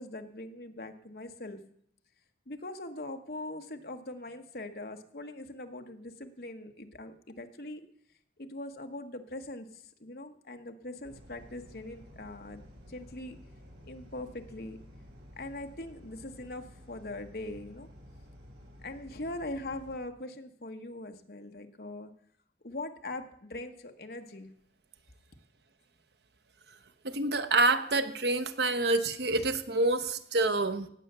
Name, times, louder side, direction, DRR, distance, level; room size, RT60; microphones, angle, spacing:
voice 1, 0.0-1.6 2.5-7.9 8.4-13.4 13.9-14.8 15.4-17.9 18.8-22.1 22.6-24.5, left 2 dB, 55° left, 5 dB, 1.2 m, -41 dB
sound 1, 11.0-20.0, equal, 90° right, 4.0 m, -52 dB
voice 2, 27.0-30.9, right 2 dB, 70° right, 10 dB, 0.9 m, -27 dB
18.0 x 7.8 x 6.7 m, 0.67 s
head